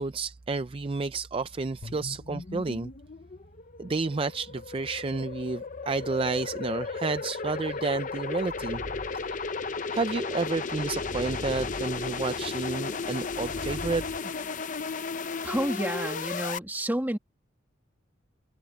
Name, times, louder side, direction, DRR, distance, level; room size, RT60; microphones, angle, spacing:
voice 1, 0.0-2.9 3.8-8.8 9.1-9.4 9.9-14.0, right 3 dB, 25° right, 0.4 m, -31 dB
sound 1, 1.5-14.2, equal, 65° left, 7.0 m, -56 dB
sound 2, 1.8-16.6, left 4 dB, 40° left, 0.7 m, -35 dB
sound 3, 8.1-14.2, equal, 55° right, 3.9 m, -44 dB
voice 2, 15.4-17.2, right 1 dB, 10° right, 1.5 m, -30 dB
head